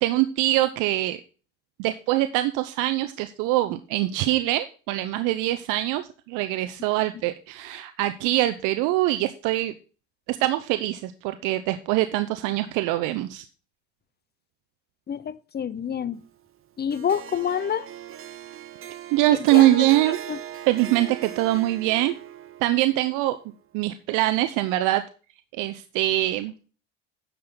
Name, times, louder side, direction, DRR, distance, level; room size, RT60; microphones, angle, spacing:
voice 1, 0.0-1.2 1.8-9.7 10.3-13.4 19.1-20.2 20.7-22.1 22.6-23.4 23.7-25.0 25.6-26.5, right 16 dB, 85° right, 0.8 m, -23 dB
voice 2, 15.1-16.2 16.8-17.9 19.3-19.7 20.3-20.4, left 8 dB, 30° left, 0.9 m, -27 dB
Harp, 16.9-23.3, right 11 dB, 45° right, 1.0 m, -37 dB
10.0 x 6.9 x 3.8 m
supercardioid pair, 95°, 31 cm